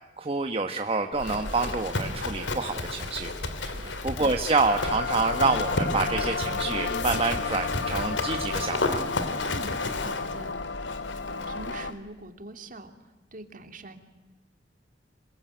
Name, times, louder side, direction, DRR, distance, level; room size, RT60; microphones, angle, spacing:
voice 1, 0.2-3.3 4.0-9.0, right 4 dB, 30° right, 5 dB, 1.3 m, -27 dB
Livestock farm animals working animals, 1.1-11.9, left 2 dB, 90° left, 3.0 m, -33 dB
voice 2, 3.6-3.9 9.4-10.7 11.0-14.0, right 2 dB, 45° right, 6 dB, 2.8 m, -44 dB
sound 1, 4.7-11.9, left 4 dB, 70° left, 0.8 m, -32 dB
26.5 x 22.0 x 9.3 m, 1.2 s
head